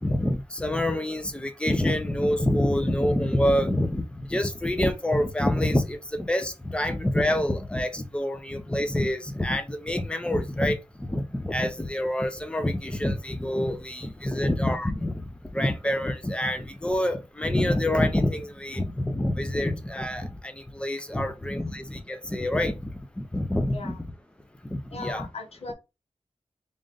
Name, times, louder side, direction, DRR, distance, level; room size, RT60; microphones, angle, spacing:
voice 1, 0.0-15.2 15.5-24.1 24.7-25.3, left 1 dB, 10° left, 0.7 m, -27 dB
voice 2, 24.9-25.7, left 3 dB, 75° left, 1.2 m, -37 dB
3.8 x 2.5 x 3.8 m
wide cardioid pair, 100°, 11 cm